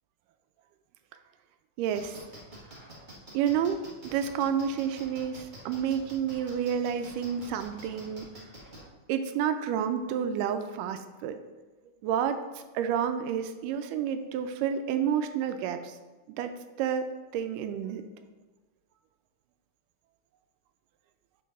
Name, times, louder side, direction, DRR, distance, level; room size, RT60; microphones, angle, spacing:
voice 1, 1.8-2.2 3.3-8.4 9.1-11.4 12.0-12.4 12.7-16.0 16.3-16.5 16.8-18.1, right 8 dB, 90° right, 9 dB, 2.2 m, -30 dB
sound 1, 1.9-8.8, right 1 dB, 55° right, 0.5 m, -47 dB
6.5 x 4.0 x 5.5 m, 1.2 s
omnidirectional pair, 3.7 m